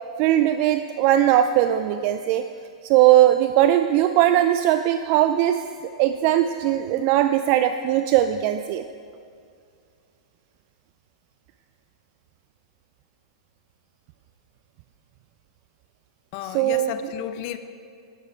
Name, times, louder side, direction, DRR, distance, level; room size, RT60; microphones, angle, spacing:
voice 1, 0.2-2.4 2.8-8.8 16.4-16.9, right 12 dB, 45° right, 9 dB, 0.3 m, -19 dB
voice 2, 16.3-17.6, left 11 dB, 45° left, 11 dB, 0.5 m, -33 dB
9.9 x 8.1 x 4.6 m, 2.3 s
hypercardioid pair, 130°, 3 cm